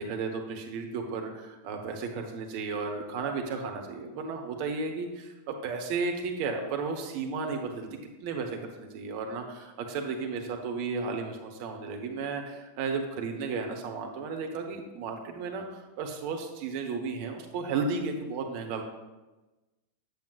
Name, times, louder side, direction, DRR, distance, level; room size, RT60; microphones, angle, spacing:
voice 1, 0.0-7.9 8.2-18.8, right 4 dB, 45° right, 3 dB, 0.9 m, -34 dB
8.7 x 7.9 x 2.4 m, 1.1 s
figure-of-eight pair, 90°, 0 cm